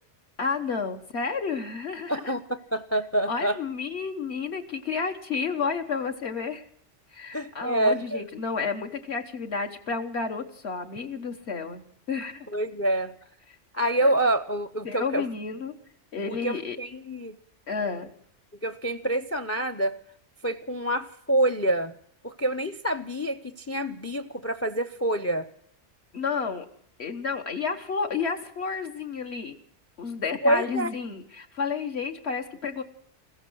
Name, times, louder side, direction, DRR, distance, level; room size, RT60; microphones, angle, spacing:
voice 1, 0.4-2.3 3.3-6.6 7.1-12.5 13.5-13.6 14.0-14.1 14.8-15.7 16.1-16.8 17.7-18.1 26.1-26.7 27.0-29.6 30.0-32.8, left 5 dB, 60° left, 5 dB, 1.4 m, -31 dB
voice 2, 2.1-3.6 7.3-8.2 12.5-13.1 13.7-15.2 16.3-17.4 18.6-20.0 20.4-22.0 22.2-25.5 30.4-30.9, right 1 dB, 20° left, 13 dB, 0.4 m, -27 dB
15.5 x 14.5 x 6.2 m, 0.63 s
omnidirectional pair, 1.2 m